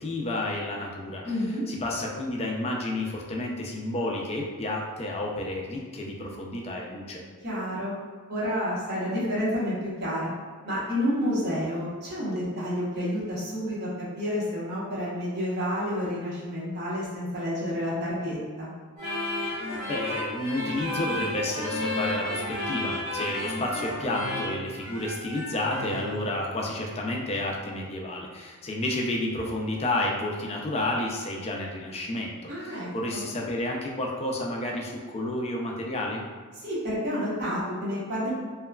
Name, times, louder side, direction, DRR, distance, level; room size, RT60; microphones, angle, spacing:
voice 1, 0.0-7.2 19.4-36.2, left 1 dB, 30° left, -1 dB, 0.3 m, -31 dB
voice 2, 1.2-1.6 7.4-7.9 8.3-10.3 10.6-13.9 14.1-18.7 32.5-33.2 36.6-38.3, equal, 50° right, -8 dB, 0.9 m, -29 dB
sound 1, 19.0-26.2, left 1 dB, 30° right, 1.2 m, -32 dB
2.9 x 2.2 x 2.2 m, 1.5 s
head